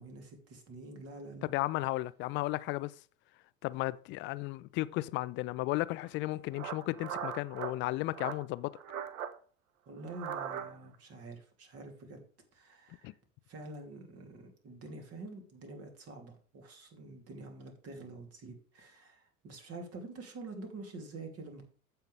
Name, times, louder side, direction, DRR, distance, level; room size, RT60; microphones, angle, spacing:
voice 1, 0.0-1.5 9.9-12.2 12.5-13.2 13.5-21.7, right 2 dB, 35° right, 2.8 m, -47 dB
voice 2, 1.5-2.9 3.6-8.7 13.0-13.1, left 18 dB, 30° left, 0.4 m, -34 dB
sound 1, 6.0-6.1 6.5-7.7 8.1-8.4 8.7-9.3 10.0-10.9, right 8 dB, 70° right, 1.0 m, -39 dB
14.5 x 5.7 x 3.3 m
figure-of-eight pair, 75°, 43 cm